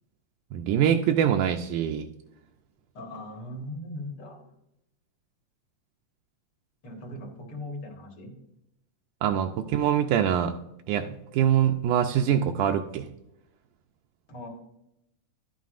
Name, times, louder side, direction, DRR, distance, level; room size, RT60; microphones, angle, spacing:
voice 1, 0.5-2.1 9.2-10.6 10.9-13.1, right 9 dB, 80° right, 4 dB, 2.0 m, -24 dB
voice 2, 2.9-4.5 6.8-8.3 14.3-14.5, left 1 dB, 50° left, 1 dB, 2.0 m, -39 dB
12.0 x 9.3 x 2.5 m, 0.84 s
omnidirectional pair, 3.7 m